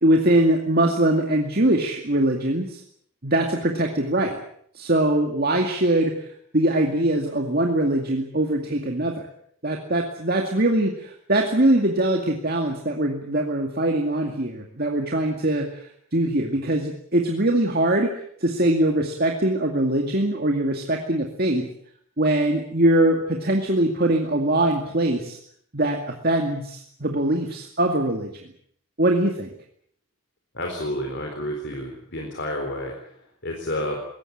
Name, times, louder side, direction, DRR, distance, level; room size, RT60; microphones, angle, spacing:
voice 1, 0.0-2.8 3.2-4.4 4.7-6.1 6.5-9.3 9.6-18.1 18.4-21.7 22.2-25.4 25.7-28.3 29.0-29.5, right 1 dB, 45° right, 2 dB, 2.3 m, -22 dB
voice 2, 30.5-34.0, left 1 dB, 50° left, 2 dB, 4.0 m, -30 dB
22.0 x 18.0 x 8.7 m, 0.65 s
head